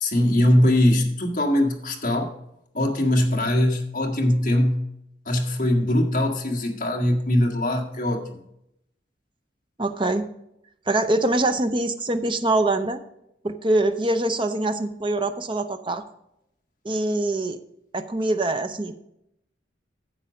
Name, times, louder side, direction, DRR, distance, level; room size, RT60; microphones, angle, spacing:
voice 1, 0.0-2.3 2.7-4.8 5.3-8.4, left 1 dB, 45° left, 2 dB, 1.7 m, -21 dB
voice 2, 9.8-10.2 10.9-13.0 13.4-16.0 16.8-17.6 17.9-19.0, right 2 dB, 25° right, 8 dB, 0.6 m, -24 dB
10.0 x 7.5 x 5.0 m, 0.79 s
head